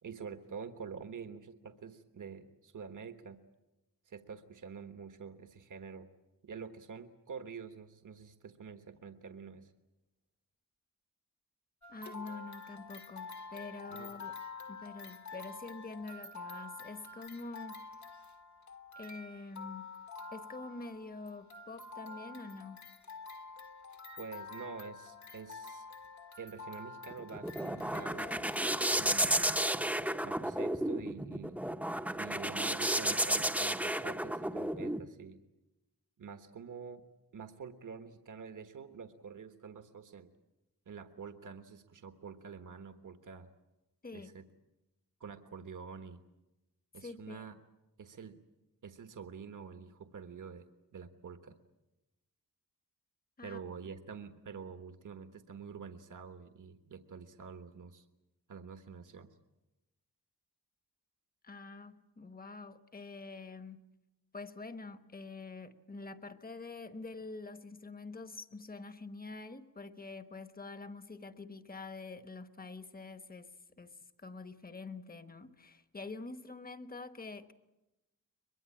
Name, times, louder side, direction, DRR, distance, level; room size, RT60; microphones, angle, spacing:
voice 1, 0.0-3.4 4.1-6.1 6.4-9.7 13.9-14.1 24.2-25.9 26.4-28.4 28.9-29.5 30.2-31.6 32.2-35.4 36.2-37.0 37.3-40.3 40.9-43.5 44.1-44.4 45.2-46.2 46.9-47.5 48.0-48.4 48.8-50.7 50.9-51.6 53.4-58.0 58.5-59.3, right 6 dB, 60° right, 8 dB, 1.3 m, -47 dB
sound 1, 11.8-28.8, left 4 dB, 55° left, 1.5 m, -48 dB
voice 2, 11.9-14.4 14.7-17.9 19.0-19.9 20.3-22.8 44.0-44.3 47.0-47.5 53.4-53.6 61.4-63.9 64.3-73.5 73.8-77.5, left 3 dB, 25° left, 11 dB, 1.1 m, -46 dB
sound 2, 27.1-35.0, right 1 dB, 5° right, 0.8 m, -32 dB
23.0 x 22.5 x 8.8 m, 0.98 s
wide cardioid pair, 160°, 34 cm